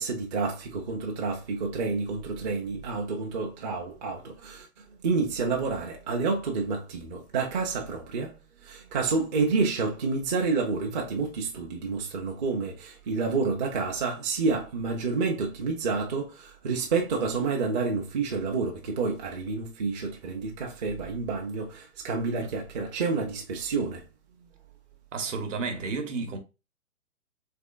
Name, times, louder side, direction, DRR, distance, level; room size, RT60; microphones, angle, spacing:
voice 1, 0.0-4.7 5.0-8.3 8.6-24.0, right 4 dB, 30° right, 0.5 m, -29 dB
voice 2, 25.1-26.4, right 4 dB, 60° right, 1.0 m, -32 dB
3.4 x 3.1 x 2.4 m
hypercardioid pair, 135°, 43 cm